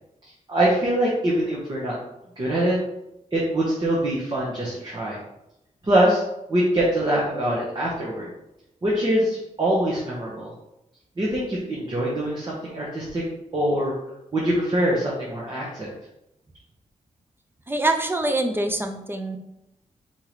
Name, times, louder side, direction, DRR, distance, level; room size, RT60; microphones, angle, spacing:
voice 1, 0.5-2.0 2.4-2.8 3.3-5.2 5.8-6.2 6.5-8.3 8.8-10.5 11.2-13.2 13.5-13.9 14.3-15.9, right 1 dB, 35° right, -5 dB, 1.2 m, -23 dB
voice 2, 17.7-19.4, right 2 dB, 15° right, 5 dB, 0.6 m, -24 dB
4.4 x 3.8 x 3.2 m, 0.86 s
wide cardioid pair, 95°, 13 cm